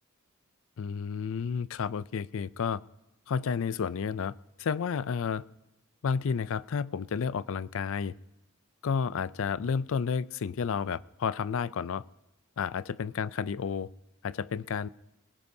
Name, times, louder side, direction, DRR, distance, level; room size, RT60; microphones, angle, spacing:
voice 1, 0.8-2.8 3.3-5.4 6.0-8.2 8.8-12.0 12.6-13.9 14.2-14.9, left 6 dB, 65° left, 18 dB, 0.4 m, -31 dB
22.0 x 19.5 x 2.7 m, 0.94 s
head